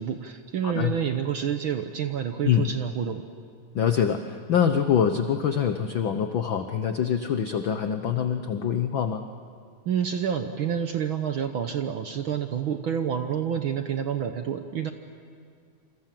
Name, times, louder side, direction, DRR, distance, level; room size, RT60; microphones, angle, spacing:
voice 1, 0.0-3.2 9.8-14.9, right 8 dB, 65° right, 7 dB, 1.3 m, -28 dB
voice 2, 0.6-0.9 2.4-2.7 3.7-9.2, left 8 dB, 70° left, 7 dB, 1.2 m, -25 dB
27.5 x 26.5 x 7.6 m, 2.3 s
omnidirectional pair, 3.4 m